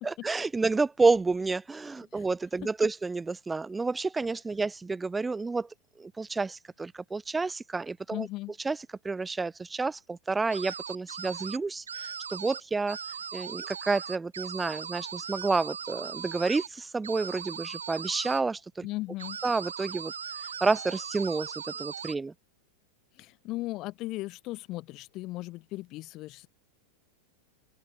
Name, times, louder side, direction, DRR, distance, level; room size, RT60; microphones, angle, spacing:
voice 1, 0.0-5.7 6.0-8.3 8.6-8.8 9.0-13.0 13.3-18.9 19.4-20.1 20.6-22.3, right 3 dB, 10° right, 0.7 m, -29 dB
voice 2, 8.1-8.5 18.8-19.4 23.2-26.5, left 19 dB, 40° left, 1.7 m, -37 dB
sound 1, 10.5-11.6 11.9-12.6 12.9-16.7 17.0-18.4 19.2-22.2, right 7 dB, 70° right, 1.9 m, -39 dB
figure-of-eight pair, 90°, 0 cm